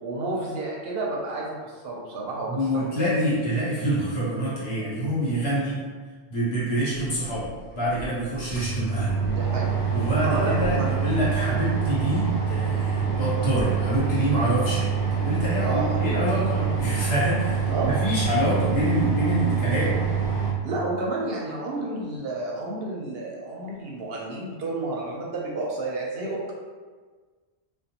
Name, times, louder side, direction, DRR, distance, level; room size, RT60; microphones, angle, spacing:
voice 1, 0.0-3.0 3.3-3.4 9.2-9.7 10.2-10.9 15.6-16.1 16.5-16.7 17.7-18.0 19.4-19.5 20.6-26.5, right 2 dB, 65° right, -4 dB, 0.8 m, -31 dB
voice 2, 2.5-5.8 6.3-9.2 9.9-20.0, right 1 dB, 65° left, -8 dB, 1.2 m, -26 dB
sound 1, 8.0-8.1 8.4-20.5, right 6 dB, 15° left, 0.7 m, -26 dB
2.5 x 2.2 x 2.8 m, 1.5 s
omnidirectional pair, 1.1 m